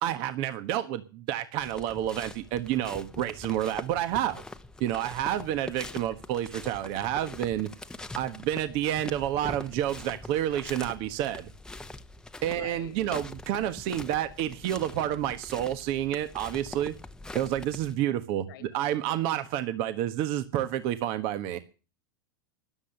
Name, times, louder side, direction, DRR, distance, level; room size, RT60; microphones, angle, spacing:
voice 1, 0.0-4.4 4.8-7.7 8.1-11.5 12.4-16.9 17.3-21.6, right 12 dB, 50° right, 1.3 m, -29 dB
sound 1, 1.6-17.9, left 2 dB, 5° left, 0.9 m, -43 dB
voice 2, 12.4-13.2 18.5-18.7, left 12 dB, 70° left, 1.9 m, -47 dB
13.0 x 10.5 x 6.7 m
hypercardioid pair, 115°, 11 cm